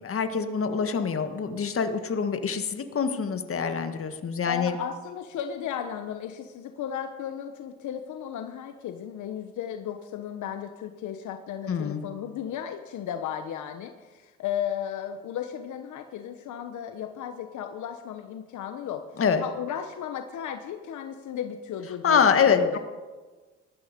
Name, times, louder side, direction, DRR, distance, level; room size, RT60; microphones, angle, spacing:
voice 1, 0.0-4.8 11.7-12.0 19.2-19.4 22.0-22.8, left 6 dB, 45° left, 8 dB, 1.8 m, -25 dB
voice 2, 4.4-19.0 19.4-22.8, left 9 dB, 70° left, 7 dB, 1.2 m, -35 dB
19.0 x 13.5 x 5.3 m, 1.3 s
supercardioid pair, 80°, 31 cm